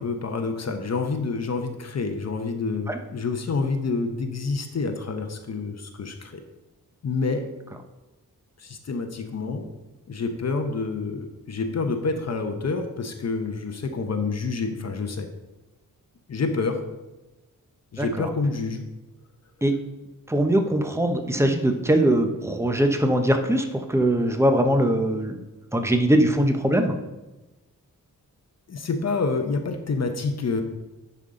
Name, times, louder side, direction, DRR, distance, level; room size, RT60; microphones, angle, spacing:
voice 1, 0.0-6.4 7.0-7.5 8.6-9.7 10.1-15.3 16.3-16.8 17.9-18.8 28.7-30.6, left 4 dB, 50° left, 5 dB, 0.9 m, -28 dB
voice 2, 18.0-18.3 19.6-19.7 20.3-25.4 25.7-26.9, right 1 dB, 10° right, 5 dB, 0.8 m, -21 dB
10.5 x 5.6 x 3.8 m, 1.1 s
wide cardioid pair, 125°, 33 cm